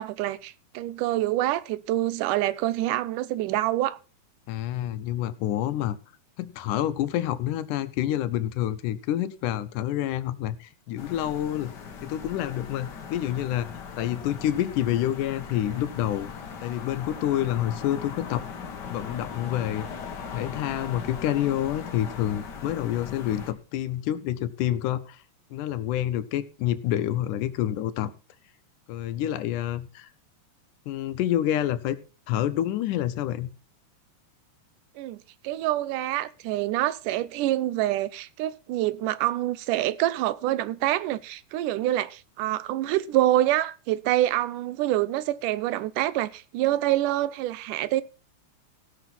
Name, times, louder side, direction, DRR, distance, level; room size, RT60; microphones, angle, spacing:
voice 1, 0.0-4.0 35.0-48.0, right 14 dB, 85° right, 2.3 m, -26 dB
voice 2, 4.5-6.0 6.4-11.7 12.0-16.3 16.6-18.4 18.9-19.9 20.3-25.2 25.5-28.1 28.9-30.1 30.9-32.0 32.3-33.5, left 12 dB, 80° left, 2.3 m, -28 dB
sound 1, 11.0-23.5, left 6 dB, 45° left, 1.5 m, -39 dB
16.5 x 6.0 x 5.8 m
omnidirectional pair, 3.6 m